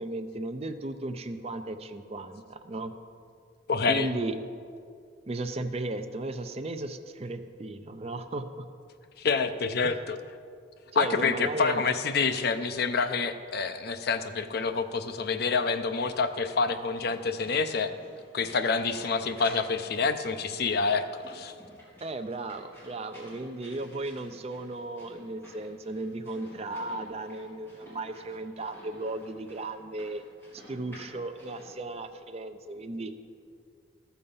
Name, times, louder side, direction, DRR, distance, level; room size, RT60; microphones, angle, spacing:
voice 1, 0.0-2.9 3.8-4.3 5.3-8.7 9.8-9.9 10.9-11.9 22.0-30.2 30.5-33.1, right 2 dB, 30° right, 9 dB, 0.5 m, -35 dB
voice 2, 3.7-4.1 9.2-10.2 10.9-17.9 18.3-21.5, left 4 dB, 55° left, 10 dB, 0.5 m, -27 dB
sound 1, 14.5-31.7, equal, 10° left, 3.4 m, -52 dB
14.0 x 6.9 x 5.5 m, 2.3 s
head